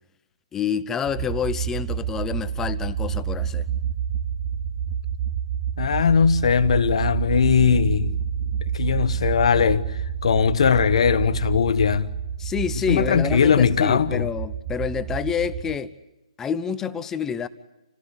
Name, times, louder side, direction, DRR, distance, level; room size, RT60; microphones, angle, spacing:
voice 1, 0.5-3.7 12.4-15.9 16.4-17.5, left 7 dB, 10° left, 0.8 m, -28 dB
sound 1, 1.1-15.8, right 8 dB, 30° right, 1.1 m, -28 dB
voice 2, 5.8-8.2 8.7-9.8 10.2-12.1 12.9-14.3, left 6 dB, 65° left, 1.3 m, -19 dB
28.0 x 17.0 x 10.0 m
hypercardioid pair, 145°, 3 cm